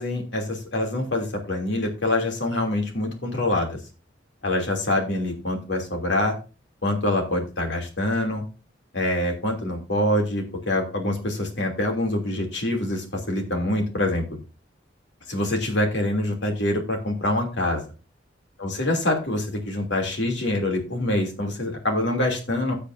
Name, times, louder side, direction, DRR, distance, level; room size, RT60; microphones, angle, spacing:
voice 1, 0.0-3.8 4.4-6.4 6.8-8.4 8.9-14.4 15.3-17.8 18.6-22.7, left 1 dB, 65° left, 2 dB, 2.9 m, -25 dB
16.5 x 6.5 x 2.7 m, 0.33 s
head